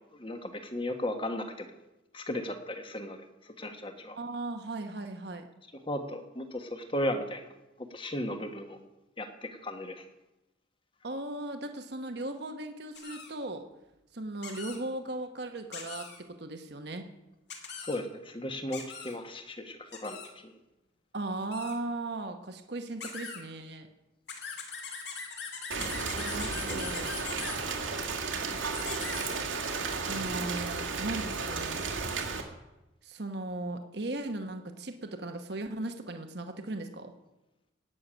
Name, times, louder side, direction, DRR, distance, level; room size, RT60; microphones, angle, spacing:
voice 1, 0.1-1.7 2.1-4.2 5.9-7.5 7.8-8.8 9.2-10.0 17.7-20.2 20.4-20.5 25.7-26.2 26.7-26.8, left 1 dB, 25° left, 6 dB, 1.4 m, -36 dB
voice 2, 4.1-5.5 11.0-13.7 14.1-17.1 21.1-23.9 26.1-27.1 30.1-31.8 33.0-37.1, right 2 dB, 55° right, 6 dB, 1.1 m, -37 dB
sound 1, 13.0-13.3 14.4-14.8 15.7-16.2 17.5-18.0 18.7-19.2 19.9-20.3 21.4-21.7 23.0-23.4 24.3-27.6 28.7-29.6, left 5 dB, 60° left, 2.5 m, -41 dB
Rain, 25.7-32.4, right 4 dB, 90° right, 2.2 m, -33 dB
17.5 x 6.8 x 9.0 m, 0.99 s
head